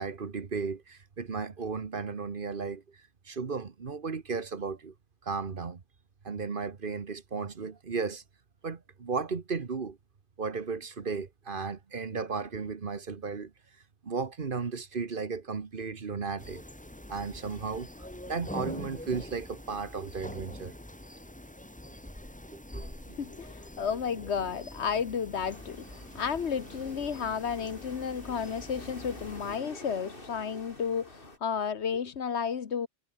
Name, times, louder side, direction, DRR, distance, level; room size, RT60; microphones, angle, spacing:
voice 1, 0.0-3.0 3.2-4.9 5.2-5.8 6.2-8.2 8.6-10.0 10.4-13.5 14.0-16.6 17.1-17.9 18.3-20.7 22.5-23.2, right 5 dB, 50° right, 1.4 m, -35 dB
sound 1, 16.4-29.6, left 1 dB, 5° left, 1.3 m, -45 dB
voice 2, 23.1-32.9, left 7 dB, 70° left, 1.4 m, -32 dB
sound 2, 25.3-31.4, left 2 dB, 50° left, 5.2 m, -48 dB
omnidirectional pair, 1.2 m